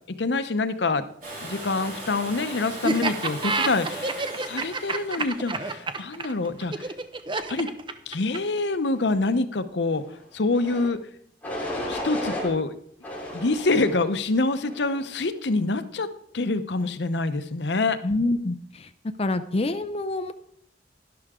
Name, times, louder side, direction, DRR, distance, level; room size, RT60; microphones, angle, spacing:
voice 1, 0.2-1.0 1.4-6.9 7.5-7.7 8.1-10.0 10.3-11.0 11.9-12.7 13.3-16.1 16.3-18.0, left 3 dB, 75° left, 11 dB, 0.8 m, -26 dB
Domestic sounds home sounds, 1.2-7.0 8.9-9.0, right 1 dB, 50° right, 4.6 m, -39 dB
Laughter, 2.8-8.6, right 3 dB, 30° right, 0.7 m, -28 dB
sound 1, 10.5-10.9 11.4-12.5 13.0-14.1 14.6-15.1, left 1 dB, 10° left, 3.6 m, -33 dB
voice 2, 18.0-18.9 19.2-20.3, left 2 dB, 35° left, 9 dB, 0.5 m, -26 dB
11.5 x 11.5 x 3.7 m, 0.66 s
head